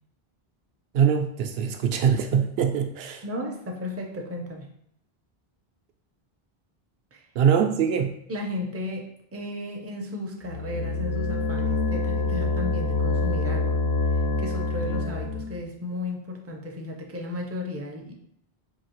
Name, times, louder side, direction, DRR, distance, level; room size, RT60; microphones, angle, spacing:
voice 1, 0.9-3.2 7.4-8.1, right 7 dB, 75° right, 6 dB, 0.8 m, -23 dB
voice 2, 3.2-4.7 7.1-7.2 8.3-13.8 14.4-18.1, left 1 dB, 20° right, 1 dB, 0.4 m, -34 dB
sound 1, 10.4-15.6, left 3 dB, 80° left, 0.8 m, -26 dB
4.7 x 2.8 x 2.9 m, 0.74 s
omnidirectional pair, 1.0 m